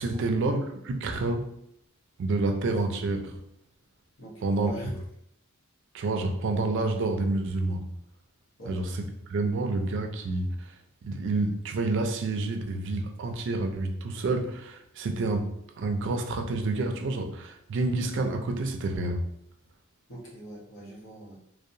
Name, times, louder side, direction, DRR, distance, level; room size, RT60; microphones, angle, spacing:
voice 1, 0.0-1.5 2.2-3.4 4.4-4.7 5.9-7.9 8.7-19.3, right 2 dB, 60° right, 5 dB, 0.4 m, -29 dB
voice 2, 4.2-4.9 8.6-8.8 20.1-21.4, equal, 75° left, -4 dB, 0.9 m, -42 dB
2.7 x 2.0 x 2.6 m, 0.76 s
head